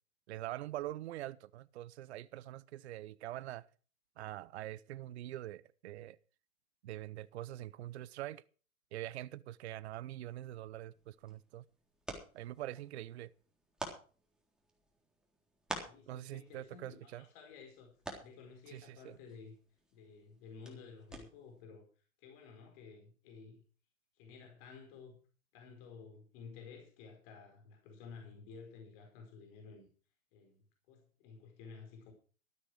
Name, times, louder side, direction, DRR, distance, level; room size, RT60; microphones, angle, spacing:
voice 1, 0.3-3.7 4.2-6.2 6.8-8.4 8.9-11.6 12.3-13.3 16.1-17.2 18.7-19.1, right 14 dB, 50° right, 0.8 m, -44 dB
sound 1, 10.9-21.6, right 1 dB, ahead, 3.6 m, -50 dB
voice 2, 15.8-17.9 18.2-19.5 19.9-21.9 22.2-23.6 24.1-25.2 25.5-29.9 30.3-32.1, left 5 dB, 40° left, 4.8 m, -53 dB
13.5 x 12.5 x 4.8 m
hypercardioid pair, 120°, 42 cm